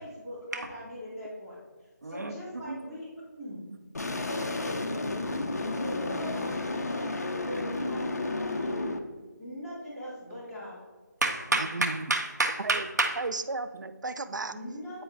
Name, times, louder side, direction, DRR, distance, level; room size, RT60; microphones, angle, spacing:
voice 1, 0.0-1.6 2.0-3.6 4.2-4.8 5.7-8.9 9.4-10.8 14.5-15.0, equal, ahead, -16 dB, 1.9 m, -41 dB
voice 2, 2.0-2.3 2.6-2.8 11.2-13.2, right 2 dB, 65° right, 3 dB, 1.3 m, -29 dB
sound 1, 3.9-9.0, left 2 dB, 60° left, 0.8 m, -32 dB
voice 3, 11.7-12.1 12.6-12.8 13.2-14.5, right 3 dB, 85° right, 11 dB, 0.6 m, -34 dB
9.2 x 4.3 x 3.8 m, 1.3 s
figure-of-eight pair, 175°, 10 cm